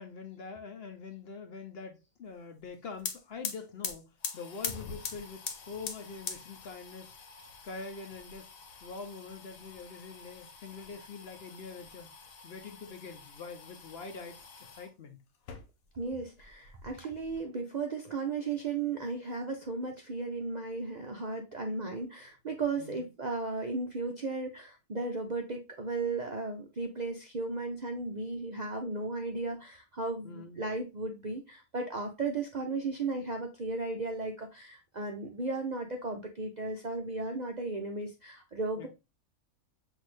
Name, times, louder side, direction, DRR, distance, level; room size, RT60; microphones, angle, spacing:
voice 1, 0.0-7.1 7.6-8.5 8.8-12.1 12.4-14.4 14.8-15.2 22.8-23.1 30.2-30.6 38.8-38.9, left 4 dB, 55° left, 0.8 m, -44 dB
sound 1, 2.6-2.7 2.9-14.9 15.3-16.1 16.4-17.4, left 6 dB, 80° left, 1.2 m, -43 dB
voice 2, 15.9-38.9, right 3 dB, 50° right, 0.5 m, -35 dB
6.0 x 2.7 x 3.0 m
omnidirectional pair, 1.4 m